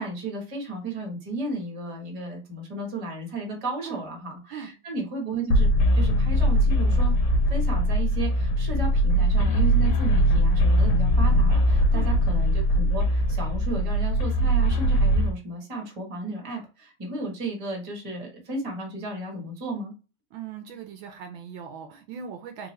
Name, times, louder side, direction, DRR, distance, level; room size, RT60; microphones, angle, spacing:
voice 1, 0.0-7.2 7.5-19.9, right 2 dB, 25° right, 1 dB, 0.8 m, -34 dB
sound 1, 5.5-15.3, equal, 65° left, 1.2 m, -21 dB
voice 2, 20.3-22.7, right 7 dB, 75° right, 5 dB, 1.3 m, -39 dB
3.6 x 2.8 x 3.1 m, 0.33 s
omnidirectional pair, 2.4 m